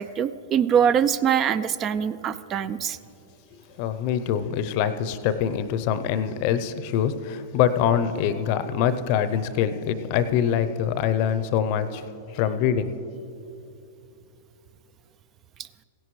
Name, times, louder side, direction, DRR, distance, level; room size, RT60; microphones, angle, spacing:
voice 1, 0.0-3.0, right 8 dB, 30° right, 15 dB, 0.3 m, -23 dB
voice 2, 3.8-12.0 12.3-12.9, left 9 dB, 50° left, 12 dB, 0.6 m, -24 dB
16.5 x 11.0 x 3.2 m, 2.7 s
hypercardioid pair, 110°, 0 cm